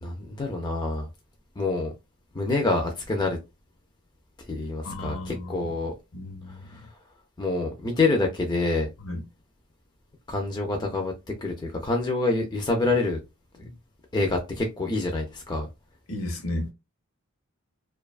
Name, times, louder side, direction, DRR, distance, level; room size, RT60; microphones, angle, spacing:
voice 1, 0.0-1.1 1.6-1.9 2.3-3.4 4.5-5.9 6.7-6.8 7.4-8.9 10.3-11.1 11.4-13.2 14.1-15.7, left 3 dB, 20° left, 0.3 m, -26 dB
voice 2, 4.8-5.8 6.1-6.9 9.0-9.2 13.6-13.8 16.1-16.7, left 1 dB, 65° left, 0.7 m, -34 dB
2.6 x 2.2 x 2.3 m
head